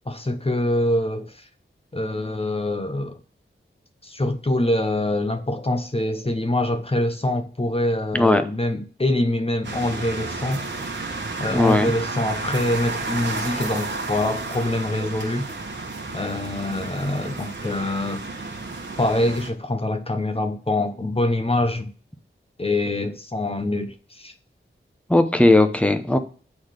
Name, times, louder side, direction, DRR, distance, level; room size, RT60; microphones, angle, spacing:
voice 1, 0.1-1.5 1.9-3.2 4.0-10.6 11.4-15.5 16.1-18.2 19.0-21.9 22.6-24.3, left 1 dB, 30° left, 1.0 m, -25 dB
sound 1, 9.6-19.5, right 3 dB, 60° right, 1.4 m, -32 dB
voice 2, 11.5-11.9 25.1-26.2, left 2 dB, 5° left, 0.9 m, -17 dB
8.5 x 3.9 x 6.6 m
wide cardioid pair, 80°, 21 cm